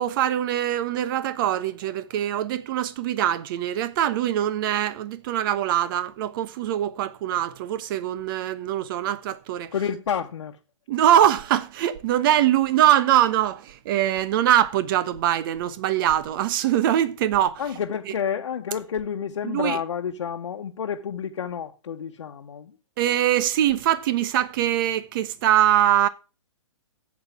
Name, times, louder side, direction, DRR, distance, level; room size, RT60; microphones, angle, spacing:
voice 1, 0.0-9.7 10.9-17.6 19.5-19.8 23.0-26.1, right 11 dB, 45° right, 1.2 m, -23 dB
voice 2, 9.7-10.6 17.6-22.7, left 7 dB, 70° left, 1.3 m, -29 dB
13.0 x 8.6 x 3.7 m
hypercardioid pair, 130°, 16 cm